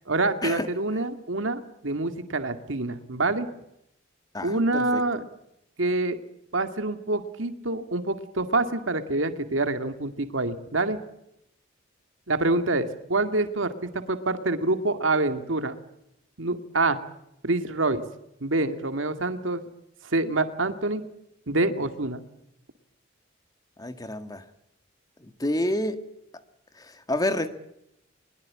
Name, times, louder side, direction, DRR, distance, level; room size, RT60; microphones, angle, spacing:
voice 1, 0.1-3.5 4.4-5.2 5.8-6.2 6.5-11.0 12.3-15.8 16.4-17.0 17.5-18.0 18.4-19.6 20.1-21.0 21.5-22.2, right 2 dB, 80° right, 8 dB, 2.1 m, -26 dB
voice 2, 4.3-5.0 23.8-24.4 25.4-26.0 26.8-27.5, left 1 dB, 20° left, 9 dB, 1.7 m, -28 dB
22.0 x 21.5 x 8.6 m, 0.81 s
head